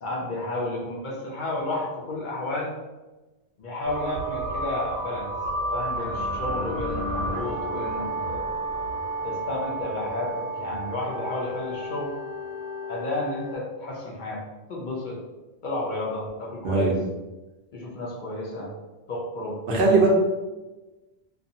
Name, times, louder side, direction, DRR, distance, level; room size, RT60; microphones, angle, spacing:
voice 1, 0.0-2.7 3.6-5.3 5.7-8.6 9.2-12.1 12.9-14.4 14.7-15.2 15.6-16.9 17.7-18.7 19.1-20.0, left 2 dB, 55° left, -3 dB, 0.6 m, -32 dB
sound 1, 3.8-13.5, right 1 dB, 85° right, 1.1 m, -31 dB
voice 2, 19.7-20.1, right 3 dB, 65° right, -2 dB, 0.8 m, -19 dB
2.6 x 2.3 x 2.6 m, 1.1 s
omnidirectional pair, 1.1 m